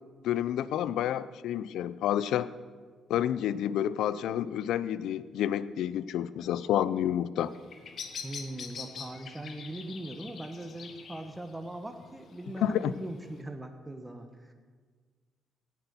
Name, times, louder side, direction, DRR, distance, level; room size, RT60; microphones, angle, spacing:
voice 1, 0.2-2.5 3.1-7.5 12.6-12.9, left 11 dB, 85° left, 16 dB, 0.4 m, -29 dB
Bird vocalization bird call bird song, 7.4-13.4, left 6 dB, 60° left, 1.1 m, -45 dB
voice 2, 8.2-14.5, right 1 dB, 10° right, 6 dB, 1.0 m, -40 dB
17.0 x 5.9 x 6.9 m, 1.5 s
cardioid pair, 90°, 0 cm